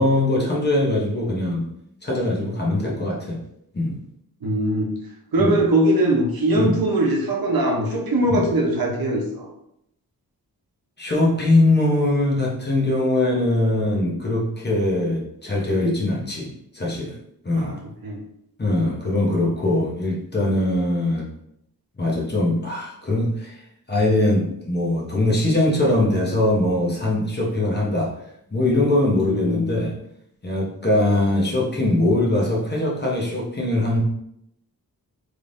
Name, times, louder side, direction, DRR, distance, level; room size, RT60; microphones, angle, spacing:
voice 1, 0.0-1.6 2.0-3.4 3.7-4.0 5.4-5.6 6.5-6.8 8.3-8.4 11.0-17.2 17.4-17.8 18.6-21.2 22.0-23.6 23.9-28.1 28.5-29.9 30.4-34.0, left 1 dB, 25° left, -3 dB, 0.8 m, -21 dB
voice 2, 4.4-4.9 5.3-9.5 17.6-17.7 18.0-18.2 29.3-29.6, right 1 dB, 65° right, -1 dB, 0.9 m, -21 dB
3.5 x 3.2 x 2.6 m, 0.75 s
wide cardioid pair, 135°, 38 cm